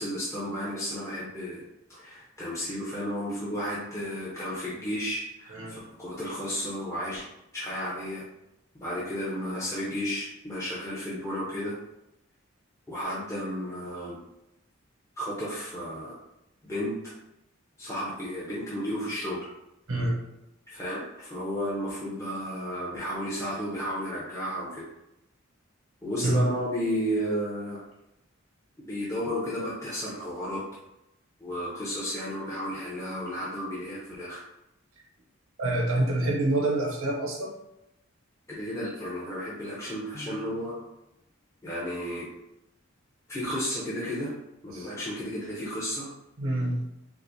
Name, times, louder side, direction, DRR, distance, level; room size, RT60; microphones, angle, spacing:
voice 1, 0.0-1.6 1.9-7.2 7.5-8.2 8.8-11.7 12.9-14.2 15.2-16.1 16.6-16.9 17.8-19.4 20.7-24.8 26.0-27.8 28.8-30.6 31.4-34.4 38.5-40.7 41.6-42.3 43.3-44.3 44.6-46.1, equal, 15° left, -8 dB, 0.6 m, -33 dB
voice 2, 5.5-5.8 19.9-20.2 26.2-26.5 35.6-37.5 44.7-44.9 46.4-46.8, right 1 dB, 85° right, -1 dB, 0.8 m, -27 dB
Piano, 40.1-41.1, left 2 dB, 60° left, 0.8 m, -47 dB
4.7 x 2.0 x 2.7 m, 0.89 s
head